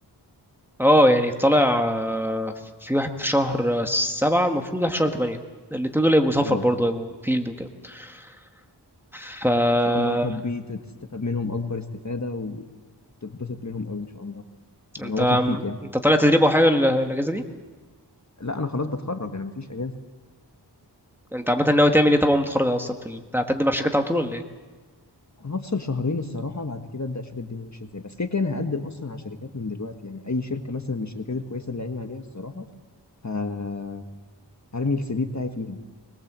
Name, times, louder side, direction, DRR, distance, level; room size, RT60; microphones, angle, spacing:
voice 1, 0.8-2.5 2.8-5.4 5.7-8.1 9.1-10.3 15.0-15.6 16.0-17.4 21.3-24.4, equal, 5° right, 4 dB, 1.6 m, -21 dB
voice 2, 9.8-10.8 11.1-12.6 13.2-14.4 15.0-15.8 18.4-19.9 25.4-32.7 33.2-34.1 34.7-35.8, left 3 dB, 40° left, 6 dB, 1.6 m, -30 dB
22.0 x 21.0 x 7.5 m, 1.3 s
wide cardioid pair, 70°, 43 cm